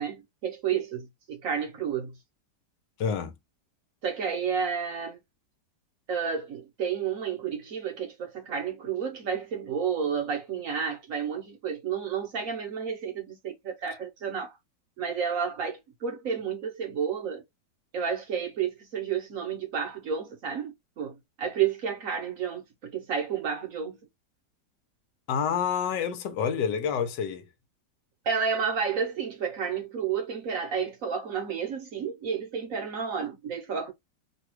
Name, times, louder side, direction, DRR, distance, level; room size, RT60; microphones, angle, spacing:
voice 1, 0.0-2.1 4.0-5.2 6.1-14.6 15.0-17.4 17.9-24.0 28.3-33.9, right 7 dB, 60° right, 1.1 m, -31 dB
voice 2, 3.0-3.3 25.3-27.5, left 7 dB, 80° left, 1.3 m, -28 dB
3.1 x 2.3 x 2.9 m
omnidirectional pair, 1.9 m